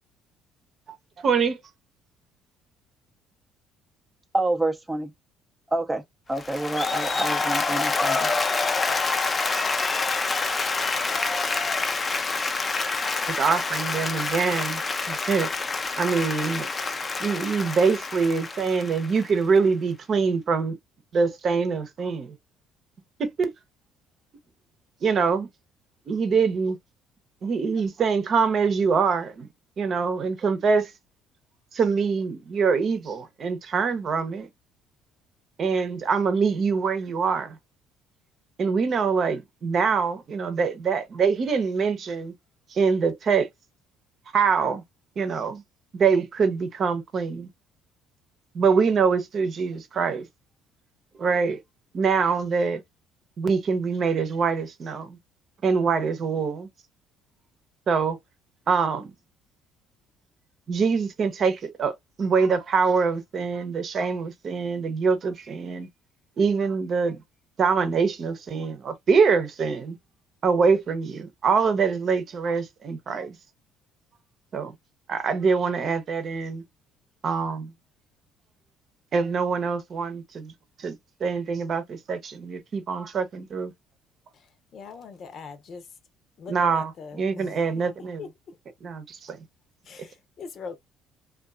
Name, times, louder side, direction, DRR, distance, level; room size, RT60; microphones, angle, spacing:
voice 1, 1.2-1.6 13.3-14.8 15.1-15.5 16.0-16.7 17.2-20.8 21.1-22.4 23.2-23.5 25.0-25.5 26.1-26.8 27.4-29.5 29.8-30.9 31.7-34.5 35.6-37.6 38.6-42.3 42.7-43.5 44.3-44.8 45.2-45.6 45.9-47.5 48.5-50.3 51.2-51.6 51.9-52.8 53.4-55.2 55.6-56.7 57.9-58.2 58.7-59.1 60.7-65.9 66.4-67.2 67.6-70.0 70.4-73.4 74.5-74.7 75.1-76.6 77.2-77.7 79.1-80.5 80.8-83.7 86.5-88.2 88.8-89.4, right 5 dB, 50° right, 0.8 m, -24 dB
voice 2, 4.3-5.1 5.7-6.0 6.3-8.3, right 2 dB, 15° right, 0.6 m, -27 dB
Applause, 6.4-19.6, left 3 dB, 30° left, 0.5 m, -27 dB
voice 3, 84.7-85.9 86.4-87.8 88.2-88.6 89.9-90.8, left 5 dB, 55° left, 0.8 m, -41 dB
2.7 x 2.5 x 2.2 m
supercardioid pair, 70°, 0 cm